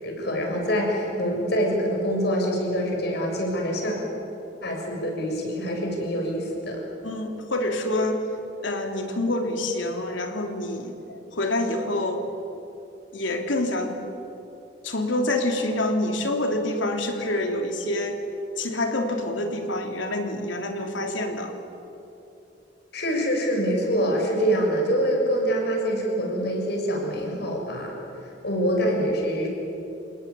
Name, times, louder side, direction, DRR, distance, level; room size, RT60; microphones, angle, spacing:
voice 1, 0.0-4.0 4.6-6.8 22.9-27.9 28.4-29.5, equal, 60° left, 0 dB, 6.9 m, -25 dB
voice 2, 7.0-8.2 8.6-12.2 13.1-14.0 14.8-18.2 18.6-21.5 25.5-25.6 26.3-26.4, left 1 dB, 85° left, 4 dB, 3.3 m, -27 dB
29.5 x 18.5 x 9.7 m, 2.9 s
head